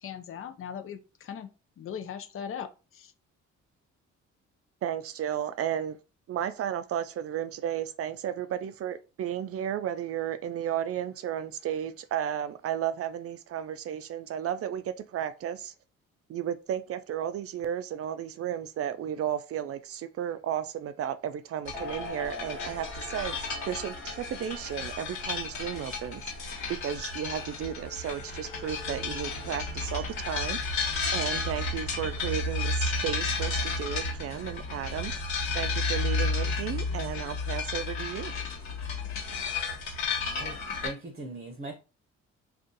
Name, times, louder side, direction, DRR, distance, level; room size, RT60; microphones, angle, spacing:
voice 1, 0.0-1.5 1.8-3.1, left 8 dB, 45° left, 0.6 m, -39 dB
voice 2, 4.8-6.0 6.3-15.7 16.3-26.2 26.7-30.6 31.1-35.1 35.5-38.3, right 10 dB, 50° right, 0.4 m, -33 dB
sound 1, 21.6-40.9, left 3 dB, 65° left, 1.4 m, -32 dB
sound 2, 21.7-33.1, left 2 dB, ahead, 1.0 m, -47 dB
voice 3, 40.8-41.7, right 3 dB, 30° right, 0.8 m, -39 dB
2.6 x 2.4 x 3.8 m
cardioid pair, 90°, 30 cm